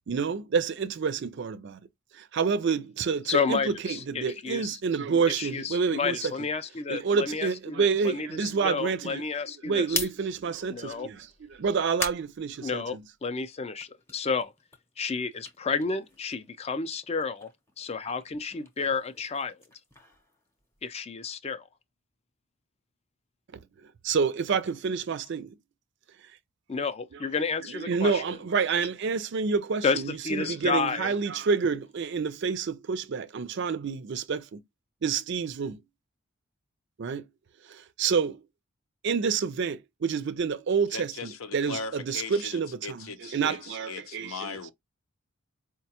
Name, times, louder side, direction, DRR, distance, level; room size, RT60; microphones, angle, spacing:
voice 1, 0.1-1.8 2.1-6.3 6.9-9.2 9.6-13.0 24.0-25.5 27.7-34.6 35.0-35.8 37.0-37.3 37.7-38.4 39.0-44.6, right 5 dB, 55° right, 0.4 m, -28 dB
voice 2, 3.3-4.8 5.4-10.0 10.7-11.1 12.6-14.5 15.0-17.5 17.8-19.6 20.8-21.6 26.7-28.2 29.8-31.1, left 5 dB, 30° left, 0.4 m, -31 dB
sound 1, 9.7-13.3 13.7-16.6 16.9-21.0, left 1 dB, 10° left, 0.7 m, -40 dB
voice 3, 40.9-44.7, left 4 dB, 75° left, 0.6 m, -39 dB
4.6 x 2.2 x 2.8 m
head